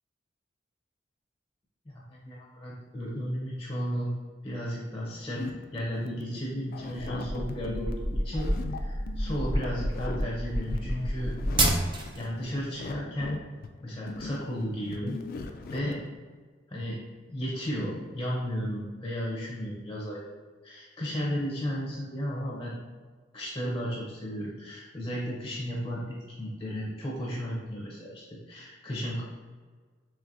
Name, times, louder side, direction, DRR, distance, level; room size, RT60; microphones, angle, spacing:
voice 1, 1.9-4.1 4.4-11.3 12.1-13.4 13.8-15.2 15.7-16.0 16.7-20.3 20.6-22.7 23.3-26.0 26.3-29.2, equal, 20° left, -4 dB, 0.6 m, -34 dB
sound 1, 5.2-16.2, left 3 dB, 55° left, 0.3 m, -41 dB
sound 2, 7.1-12.3, right 1 dB, 25° right, 0.4 m, -29 dB
4.6 x 3.0 x 2.6 m, 1.5 s
head